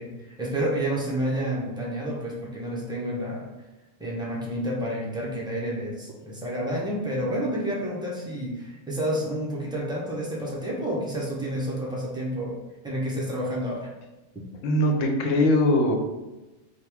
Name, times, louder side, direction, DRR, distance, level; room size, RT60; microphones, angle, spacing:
voice 1, 0.0-3.5 4.0-12.6 12.8-13.9 14.3-14.4, right 1 dB, 5° right, -5 dB, 0.4 m, -29 dB
voice 2, 14.6-16.0, left 1 dB, 80° left, 3 dB, 0.9 m, -21 dB
3.0 x 2.3 x 3.4 m, 1.1 s
omnidirectional pair, 1.3 m